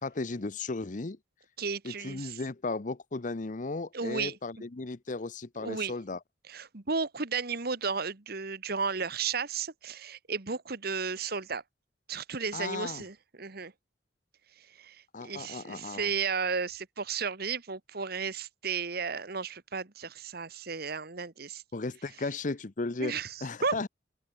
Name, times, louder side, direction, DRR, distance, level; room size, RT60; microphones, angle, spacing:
voice 1, 0.0-1.2 1.8-6.2 12.5-13.0 15.1-16.1 21.7-23.9, left 3 dB, 45° left, 0.8 m, -35 dB
voice 2, 1.6-2.4 3.9-4.3 5.6-5.9 6.5-11.6 12.1-13.7 14.8-15.0 15.2-21.6 23.0-23.3 23.6-23.8, right 5 dB, 55° right, 1.5 m, -33 dB
open air
head